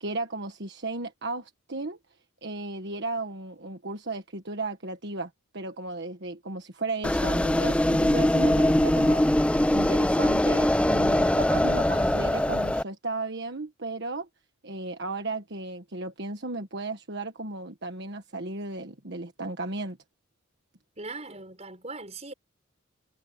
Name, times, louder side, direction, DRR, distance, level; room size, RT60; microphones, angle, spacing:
voice 1, 0.0-2.0 2.4-9.3 9.7-14.3 14.6-20.0, right 2 dB, 55° right, 1.5 m, -35 dB
sound 1, 7.0-12.8, left 1 dB, 5° left, 0.4 m, -22 dB
voice 2, 21.0-22.3, right 3 dB, 30° right, 5.8 m, -40 dB
head